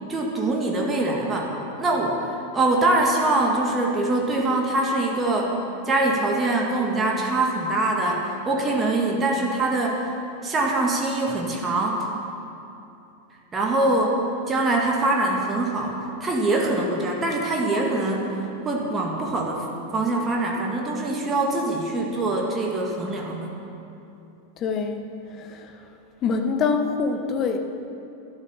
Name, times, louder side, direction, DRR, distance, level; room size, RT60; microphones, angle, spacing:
voice 1, 0.1-1.5 1.8-5.6 5.8-10.1 10.4-12.1 13.5-14.2 14.5-18.3 18.6-19.7 19.9-23.5, right 2 dB, 20° right, -1 dB, 1.8 m, -23 dB
voice 2, 24.6-25.0 25.4-25.7 26.2-27.6, left 5 dB, 30° left, 6 dB, 1.1 m, -25 dB
12.0 x 12.0 x 7.0 m, 2.8 s
figure-of-eight pair, 90°, 0 cm